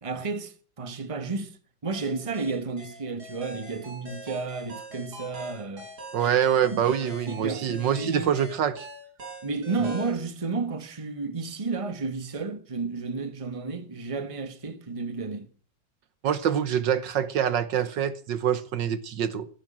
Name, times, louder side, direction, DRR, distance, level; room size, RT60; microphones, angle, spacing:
voice 1, 0.0-1.6 1.8-5.9 6.2-6.3 6.6-8.3 9.4-15.5, right 4 dB, 20° right, 1.3 m, -32 dB
sound 1, 1.9-10.2, equal, 55° right, 4.7 m, -43 dB
voice 2, 6.1-8.9 16.2-19.5, right 9 dB, 70° right, 1.6 m, -25 dB
14.5 x 11.0 x 7.5 m
omnidirectional pair, 2.1 m